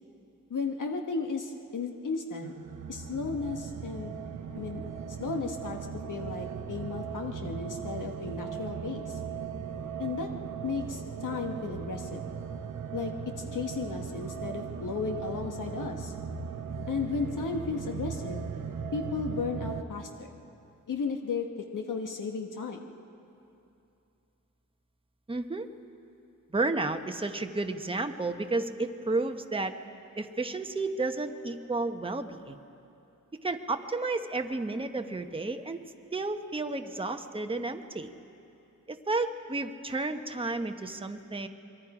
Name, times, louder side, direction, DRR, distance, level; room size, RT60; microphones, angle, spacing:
voice 1, 0.5-2.5 2.9-4.2 4.5-4.8 5.2-5.8 6.1-9.2 10.0-10.3 10.6-12.2 12.9-16.1 16.9-18.5 18.9-20.3 20.9-21.5 21.7-22.9, left 5 dB, 70° left, 3 dB, 1.3 m, -34 dB
sound 1, 2.4-19.8, right 6 dB, 65° right, 1.0 m, -38 dB
voice 2, 25.3-25.7 26.5-29.8 30.2-32.6 33.4-35.8 36.1-38.1 38.9-41.5, right 3 dB, 15° right, 6 dB, 0.9 m, -32 dB
26.5 x 23.0 x 4.9 m, 2.7 s
wide cardioid pair, 120°, 32 cm